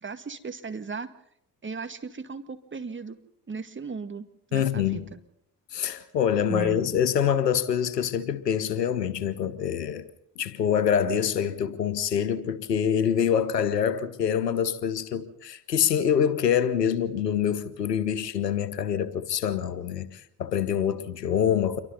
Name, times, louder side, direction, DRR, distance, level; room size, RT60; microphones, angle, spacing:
voice 1, 0.0-1.1 1.6-3.2 3.5-5.2 6.5-6.8, right 4 dB, 25° right, 2.1 m, -36 dB
voice 2, 4.5-5.1 5.7-10.0 10.4-21.8, left 8 dB, 80° left, 1.2 m, -25 dB
27.5 x 24.0 x 4.2 m
figure-of-eight pair, 45°, 48 cm